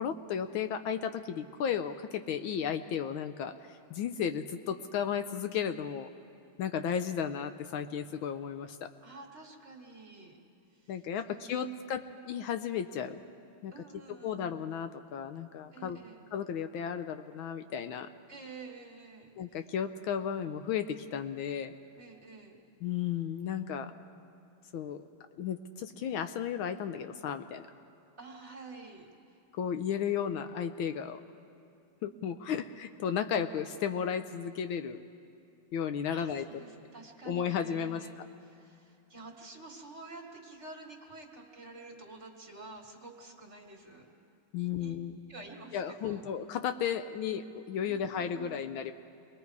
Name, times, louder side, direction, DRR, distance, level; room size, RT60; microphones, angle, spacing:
voice 1, 0.0-6.1 6.6-8.9 10.9-13.2 13.6-13.7 14.2-16.0 16.3-18.1 19.4-21.7 22.8-23.9 24.7-25.0 25.4-27.7 29.5-31.2 32.0-35.0 35.7-36.4 37.3-38.3 44.5-45.2 45.7-48.9, left 8 dB, 75° left, 8 dB, 1.4 m, -34 dB
voice 2, 9.0-10.4 10.7-12.0 13.7-14.5 15.7-16.2 18.3-19.6 22.0-22.6 28.2-29.1 36.0-38.2 38.4-44.1 44.6-45.0 45.3-46.2 47.8-48.7, right 3 dB, 35° right, 1 dB, 2.0 m, -49 dB
28.0 x 21.0 x 4.7 m, 2.6 s
omnidirectional pair, 2.4 m